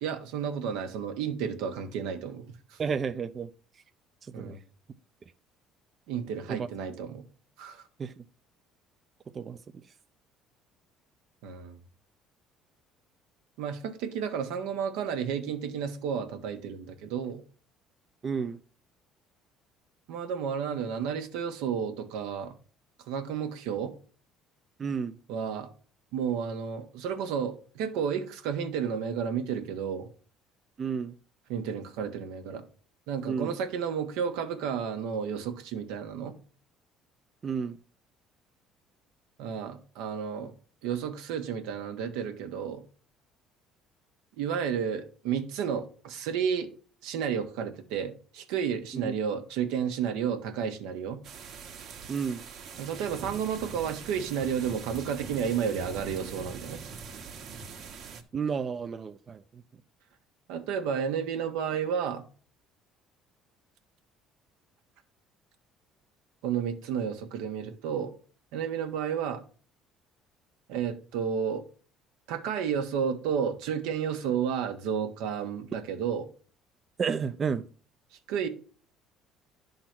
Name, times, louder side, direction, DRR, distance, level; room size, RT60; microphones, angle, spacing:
voice 1, 0.0-2.8 4.3-4.6 6.1-7.2 7.6-7.9 11.4-11.8 13.6-17.4 20.1-22.6 23.1-23.9 25.3-25.7 26.1-30.1 31.5-32.6 33.1-36.3 39.4-40.5 40.8-42.8 44.4-46.7 47.0-51.2 52.8-56.8 60.5-62.3 66.4-68.1 68.5-69.4 70.7-71.6 72.3-76.3 78.3-78.5, right 7 dB, 85° right, 1.2 m, -32 dB
voice 2, 2.8-3.8 4.2-4.6 6.5-6.7 8.0-8.2 9.3-9.6 18.2-18.6 24.8-25.2 30.8-31.2 33.3-33.5 37.4-37.8 48.9-49.1 52.1-52.4 58.3-59.6 77.0-77.7, right 6 dB, 35° right, 0.5 m, -32 dB
sound 1, 51.2-58.2, right 5 dB, 60° right, 1.3 m, -42 dB
10.5 x 3.9 x 5.9 m
cardioid pair, 105°, 0 cm